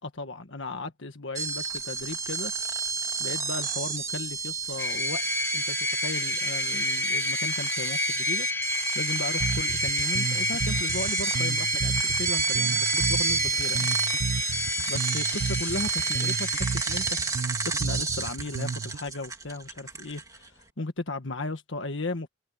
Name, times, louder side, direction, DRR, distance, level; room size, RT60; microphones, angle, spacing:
voice 1, 0.0-2.5 3.2-5.3 5.5-8.5 8.9-13.9 14.9-22.3, left 2 dB, 65° left, 1.6 m, -36 dB
sound 1, 1.3-20.5, right 5 dB, 15° right, 2.1 m, -30 dB
sound 2, 4.8-17.6, left 3 dB, 10° left, 3.5 m, -31 dB
Bass guitar, 9.4-19.0, right 4 dB, 65° right, 0.5 m, -33 dB
head